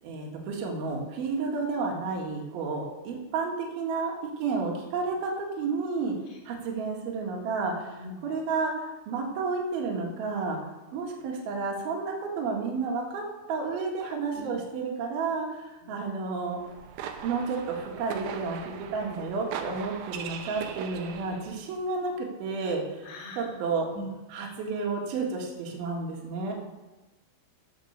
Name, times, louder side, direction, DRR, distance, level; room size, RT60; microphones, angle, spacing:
voice 1, 0.0-6.1 6.4-10.6 10.9-16.6 17.2-18.6 18.9-23.1 23.4-23.9 24.3-26.5, right 4 dB, 55° right, 0 dB, 3.2 m, -31 dB
voice 2, 7.9-8.3 14.3-14.5 15.8-16.0 23.0-23.5 23.9-24.1, left 1 dB, 60° left, -7 dB, 4.3 m, -41 dB
sound 1, 16.6-21.6, right 8 dB, 80° right, 3.3 m, -39 dB
16.0 x 6.2 x 6.7 m, 1.1 s
omnidirectional pair, 5.9 m